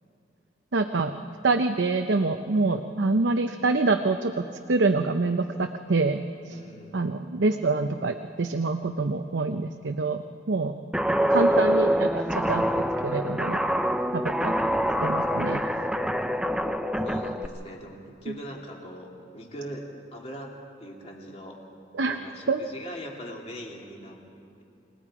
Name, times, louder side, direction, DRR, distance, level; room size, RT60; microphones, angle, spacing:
voice 1, 0.7-1.2 1.4-6.2 6.4-6.6 6.9-10.7 11.3-12.6 13.0-13.6 14.1-14.5 15.0-15.6 21.9-22.2 22.5-22.6, right 3 dB, 90° right, 6 dB, 0.7 m, -26 dB
voice 2, 6.5-7.0 17.0-20.5 20.8-21.6 22.0-24.2, equal, 35° left, -1 dB, 2.7 m, -41 dB
Guitar, 10.9-17.5, equal, 5° right, 0.5 m, -25 dB
29.5 x 18.5 x 4.9 m, 2.7 s
head